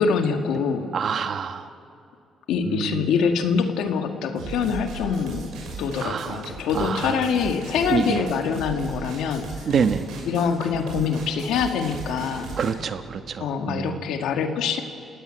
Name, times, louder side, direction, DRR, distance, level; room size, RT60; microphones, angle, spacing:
voice 1, 0.0-0.9 2.5-5.4 5.8-9.7 10.3-12.5 13.4-14.8, left 6 dB, 85° left, 5 dB, 1.8 m, -24 dB
voice 2, 0.9-1.7 2.6-3.1 6.0-6.4 6.7-7.2 7.9-8.2 9.6-10.1 12.6-14.0, right 6 dB, 55° right, 9 dB, 1.3 m, -26 dB
sound 1, 4.3-12.7, right 4 dB, 85° right, 6.3 m, -37 dB
30.0 x 17.0 x 8.9 m, 2.6 s
cardioid pair, 90°, 0 cm